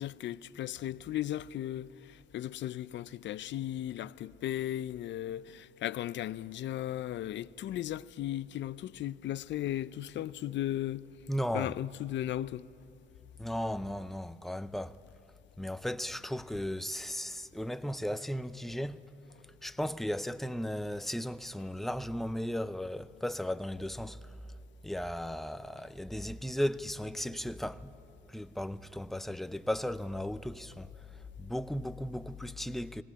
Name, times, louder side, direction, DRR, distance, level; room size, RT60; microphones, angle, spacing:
voice 1, 0.0-11.1 11.5-12.7, left 12 dB, 65° left, 0.5 m, -36 dB
voice 2, 11.3-11.7 13.4-14.9 15.6-19.0 19.6-24.2 24.8-27.9 28.3-30.9 31.4-33.0, equal, ahead, 0.5 m, -36 dB
18.5 x 18.0 x 9.6 m
cardioid pair, 90°, 20 cm